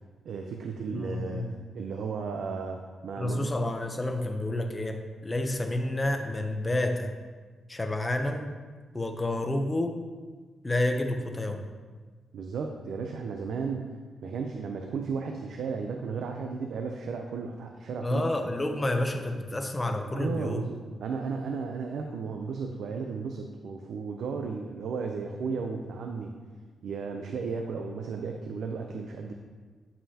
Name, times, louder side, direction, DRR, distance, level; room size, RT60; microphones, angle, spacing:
voice 1, 0.3-3.5 12.3-13.9 14.2-18.2 20.0-20.7 21.0-26.4 26.8-29.3, right 5 dB, 75° right, 3 dB, 0.5 m, -34 dB
voice 2, 0.9-1.6 3.2-7.1 7.7-8.5 8.9-10.0 10.6-11.7 18.0-20.6, left 1 dB, 15° left, 5 dB, 0.6 m, -29 dB
9.6 x 5.5 x 2.8 m, 1.4 s
wide cardioid pair, 135°, 0 cm